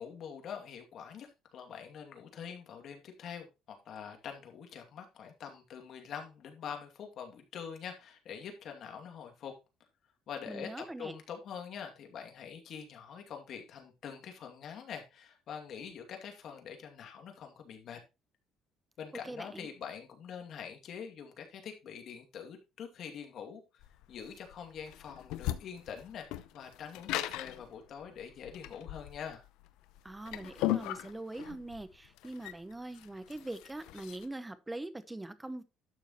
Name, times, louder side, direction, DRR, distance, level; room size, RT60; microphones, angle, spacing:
voice 1, 0.0-9.5 10.3-18.0 19.0-26.3 26.5-29.4, left 7 dB, 55° left, 2.4 m, -45 dB
voice 2, 10.5-11.1 19.2-19.7 30.0-35.6, right 2 dB, 10° right, 0.9 m, -42 dB
sound 1, 23.8-34.3, left 15 dB, 90° left, 0.7 m, -38 dB
12.0 x 6.4 x 3.0 m
cardioid pair, 125°, 0 cm